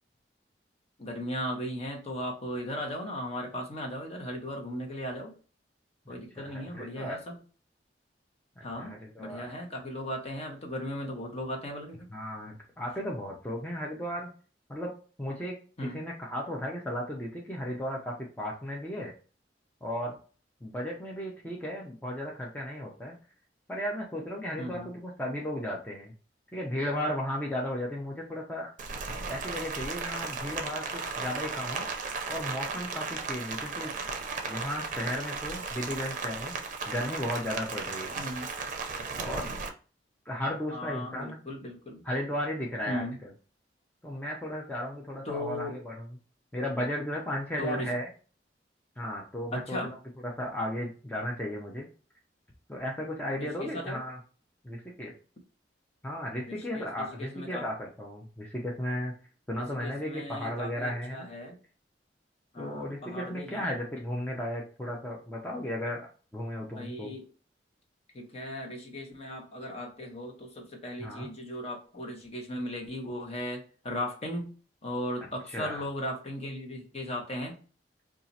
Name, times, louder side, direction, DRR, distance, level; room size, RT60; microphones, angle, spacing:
voice 1, 1.0-5.3 6.1-7.4 8.6-12.1 15.8-16.0 24.6-24.9 38.2-38.5 40.7-42.0 42.9-43.2 45.3-45.8 47.6-47.9 49.5-49.9 53.3-54.0 56.5-57.7 59.5-61.6 62.5-63.7 66.7-67.3 68.1-74.5 74.8-77.6, left 1 dB, 35° left, 1 dB, 0.9 m, -37 dB
voice 2, 6.1-7.2 8.6-9.4 12.1-14.3 14.7-14.9 15.2-15.5 15.8-19.1 19.8-20.2 20.6-23.2 23.7-26.1 26.5-28.7 29.3-31.8 32.3-33.9 34.5-36.5 36.9-38.2 39.1-39.5 40.3-41.4 42.0-43.3 44.0-46.1 46.5-48.1 49.0-50.0 50.2-51.9 52.7-54.2 54.6-55.1 56.0-59.1 59.5-61.3 62.6-66.1 66.3-67.1 71.0-71.3 75.5-75.8, equal, 10° left, -3 dB, 0.5 m, -35 dB
Rain, 28.8-39.7, right 4 dB, 45° right, 0.5 m, -35 dB
2.8 x 2.4 x 3.9 m, 0.37 s
head